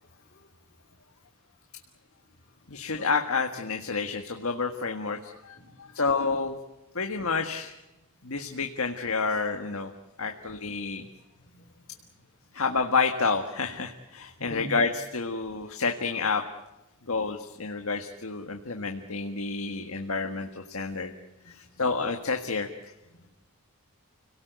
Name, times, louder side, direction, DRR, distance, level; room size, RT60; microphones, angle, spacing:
voice 1, 0.0-0.5 2.5-3.1 5.5-6.0 11.4-12.2 14.4-14.7 21.5-21.6 23.1-23.3, equal, 50° left, -3 dB, 3.9 m, -46 dB
voice 2, 2.7-6.6 6.9-7.7 8.2-9.9 10.2-11.1 12.5-16.4 17.1-21.1 21.4-22.9, left 4 dB, 70° left, 4 dB, 1.7 m, -29 dB
30.0 x 18.0 x 8.2 m, 1.0 s
head